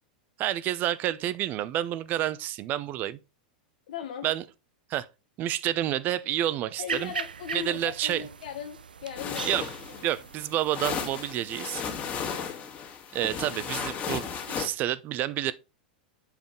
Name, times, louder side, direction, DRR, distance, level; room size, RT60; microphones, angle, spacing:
voice 1, 0.4-3.2 4.2-4.4 4.9-5.1 5.4-7.1 7.5-8.3 9.4-9.7 10.0-11.8 13.1-15.5, right 12 dB, 40° right, 0.6 m, -29 dB
voice 2, 3.9-4.3 6.8-10.2 12.2-12.7, left 9 dB, 70° left, 1.0 m, -39 dB
sound 1, 6.9-12.5, right 6 dB, 85° right, 0.5 m, -40 dB
sound 2, 9.2-14.7, left 7 dB, 35° left, 1.9 m, -35 dB
7.4 x 5.3 x 3.8 m
hypercardioid pair, 100°, 5 cm